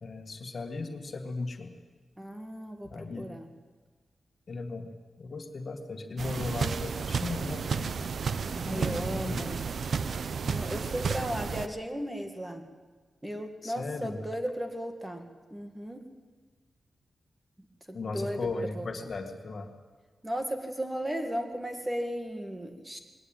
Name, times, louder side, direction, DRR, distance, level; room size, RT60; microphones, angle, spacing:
voice 1, 0.0-1.7 2.8-3.4 4.5-4.9 5.2-7.9 8.7-9.5 13.6-14.2 17.9-19.7, left 3 dB, 50° left, 5 dB, 2.0 m, -36 dB
voice 2, 2.2-2.9 3.2-3.5 8.5-9.6 10.5-12.6 13.2-15.2 15.5-16.0 17.9-18.5 18.8-18.9 20.2-23.0, equal, 15° right, 5 dB, 2.1 m, -35 dB
sound 1, 6.2-11.7, right 5 dB, 65° right, 0.9 m, -32 dB
21.0 x 18.0 x 9.1 m, 1.4 s
wide cardioid pair, 105°, 0 cm